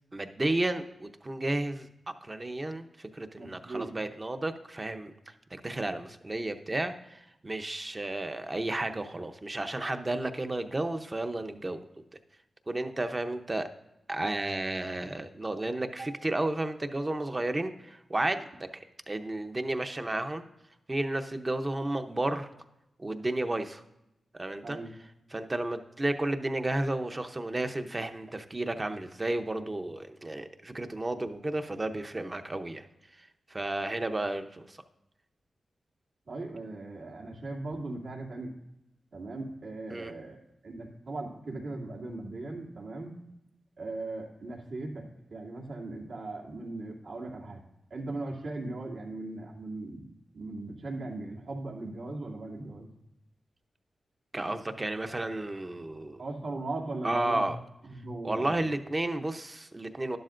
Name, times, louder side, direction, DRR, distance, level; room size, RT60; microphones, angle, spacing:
voice 1, 0.1-1.9 2.2-11.8 12.7-13.7 14.1-18.7 19.1-20.4 20.9-22.5 23.0-23.8 24.3-24.8 25.3-32.8 33.2-34.8 39.9-40.1 54.3-56.2 57.0-57.6 58.2-60.2, right 2 dB, 25° right, 7 dB, 0.7 m, -32 dB
voice 2, 3.4-3.9 16.0-16.1 24.6-24.9 36.3-38.5 39.1-43.1 43.8-47.6 47.9-50.0 50.3-52.9 56.2-57.5 57.8-58.7, right 2 dB, 80° right, -3 dB, 2.5 m, -38 dB
12.0 x 11.0 x 2.5 m, 0.88 s
wide cardioid pair, 105°, 0 cm